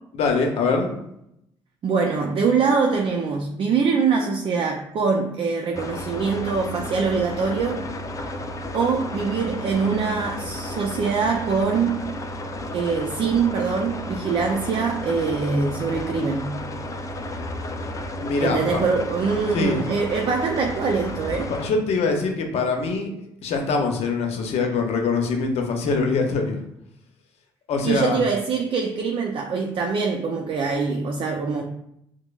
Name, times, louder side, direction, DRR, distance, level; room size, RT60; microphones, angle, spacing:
voice 1, 0.1-0.9 18.2-18.8 19.5-19.8 21.5-23.1 23.4-26.6 27.7-28.2, left 4 dB, 70° left, 3 dB, 0.7 m, -23 dB
voice 2, 1.8-7.8 8.7-12.1 12.7-16.6 18.4-21.5 27.8-31.6, right 5 dB, 50° right, 1 dB, 0.5 m, -23 dB
sound 1, 5.7-21.7, left 1 dB, 30° left, 0.4 m, -33 dB
4.9 x 2.0 x 2.3 m, 0.79 s
supercardioid pair, 65°, 11 cm